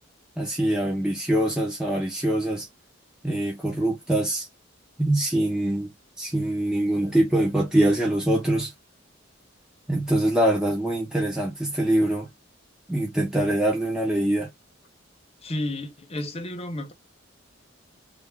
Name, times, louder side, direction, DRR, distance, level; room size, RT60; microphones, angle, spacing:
voice 1, 0.4-2.7 3.2-4.5 5.0-5.9 6.2-8.7 9.9-12.3 12.9-14.5, right 1 dB, 5° right, 0.7 m, -24 dB
voice 2, 15.4-16.9, left 1 dB, 30° left, 0.8 m, -31 dB
3.3 x 2.3 x 3.4 m
head